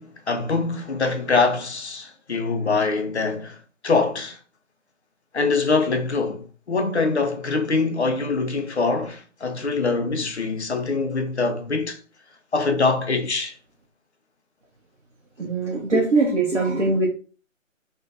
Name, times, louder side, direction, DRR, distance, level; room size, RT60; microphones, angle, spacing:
voice 1, 0.0-3.6 3.8-4.4 5.3-12.0 12.5-13.5, left 4 dB, 55° left, 0.5 m, -24 dB
voice 2, 15.4-17.1, right 3 dB, 65° right, 0.7 m, -21 dB
2.5 x 2.2 x 2.4 m
figure-of-eight pair, 165°, 40 cm